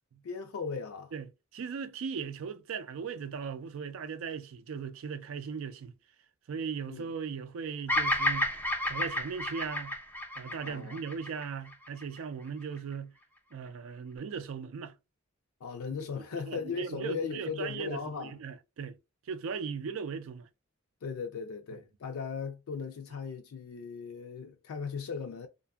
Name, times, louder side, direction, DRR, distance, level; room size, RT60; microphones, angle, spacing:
voice 1, 0.2-1.1 6.9-7.1 10.6-11.0 15.6-18.3 21.0-25.5, left 5 dB, 80° left, 0.4 m, -37 dB
voice 2, 1.1-5.9 6.5-8.5 8.8-10.0 10.4-13.1 13.5-14.9 16.3-19.0 19.3-20.5 21.7-21.8, right 6 dB, 70° right, 0.4 m, -38 dB
Bird vocalization bird call bird song, 7.9-12.2, left 1 dB, 10° left, 0.4 m, -31 dB
2.5 x 2.5 x 2.2 m
head